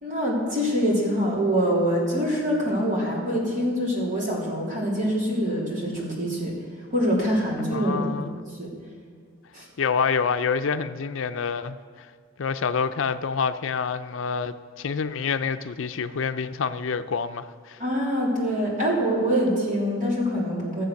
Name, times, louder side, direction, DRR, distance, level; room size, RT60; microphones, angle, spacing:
voice 1, 0.0-6.5 6.9-8.0 8.5-8.7 9.5-9.7 17.8-20.8, equal, 40° right, 3.4 m, -24 dB
voice 2, 7.7-8.4 9.8-12.1 12.4-17.8, left 6 dB, 70° left, 0.5 m, -27 dB
15.5 x 7.5 x 6.4 m
head